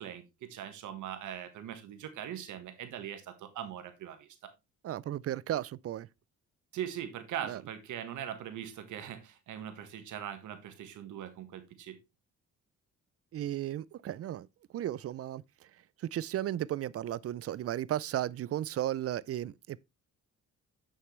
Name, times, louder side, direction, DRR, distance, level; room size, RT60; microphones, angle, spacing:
voice 1, 0.0-4.5 6.7-12.0, right 10 dB, 80° right, 1.6 m, -41 dB
voice 2, 4.8-6.1 7.4-7.6 13.3-14.5 14.7-15.4 16.0-19.8, right 12 dB, 50° right, 0.5 m, -34 dB
7.9 x 6.4 x 3.2 m
cardioid pair, 90°, 30 cm